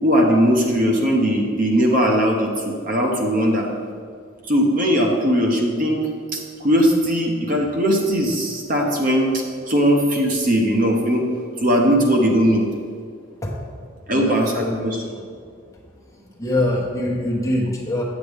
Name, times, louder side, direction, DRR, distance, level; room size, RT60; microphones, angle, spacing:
voice 1, 0.0-3.7 4.5-6.0 6.3-11.2 11.6-12.7 14.1-15.0, equal, 40° right, 0 dB, 0.9 m, -19 dB
voice 2, 14.1-14.9 16.4-18.0, left 1 dB, 15° left, -4 dB, 1.2 m, -24 dB
8.4 x 8.1 x 3.5 m, 2.1 s
head